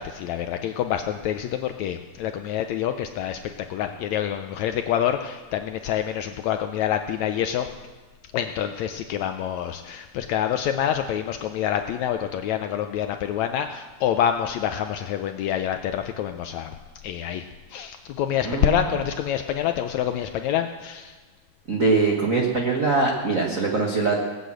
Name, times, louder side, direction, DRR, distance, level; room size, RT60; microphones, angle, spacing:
voice 1, 0.0-7.7 8.3-16.7 17.0-17.5 17.7-21.1, left 10 dB, 80° left, 7 dB, 1.6 m, -27 dB
voice 2, 18.4-18.9 21.7-24.2, right 3 dB, 65° right, 0 dB, 0.7 m, -22 dB
19.0 x 8.2 x 7.7 m, 1.3 s
omnidirectional pair, 3.8 m